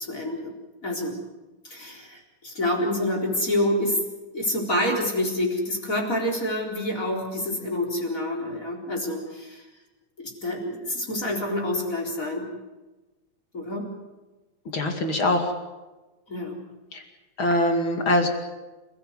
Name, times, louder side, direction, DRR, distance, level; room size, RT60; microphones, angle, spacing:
voice 1, 0.1-0.5 0.8-1.1 1.6-4.0 4.3-9.6 10.2-12.5 13.5-13.9 16.3-16.6, left 1 dB, 25° left, 0 dB, 4.3 m, -27 dB
voice 2, 14.7-15.5 16.9-17.0 17.4-18.3, left 1 dB, 40° left, 4 dB, 2.9 m, -23 dB
28.5 x 16.0 x 8.1 m, 1.2 s
omnidirectional pair, 3.6 m